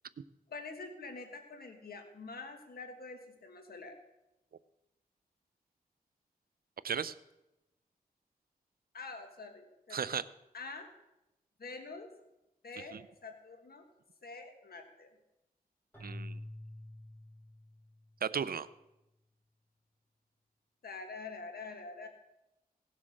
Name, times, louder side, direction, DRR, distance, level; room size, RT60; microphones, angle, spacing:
voice 1, 0.5-4.0 8.9-10.1 10.5-10.9 11.6-12.1 12.6-13.8 14.2-15.1 20.8-22.1, left 3 dB, 90° left, 5 dB, 1.6 m, -46 dB
voice 2, 9.9-10.2 12.9-13.0 16.0-16.4 18.2-18.7, right 7 dB, 75° right, 16 dB, 0.6 m, -35 dB
Keyboard (musical), 15.9-18.2, left 1 dB, 15° left, 6.6 m, -47 dB
18.0 x 7.4 x 6.4 m, 0.94 s
wide cardioid pair, 95°, 15 cm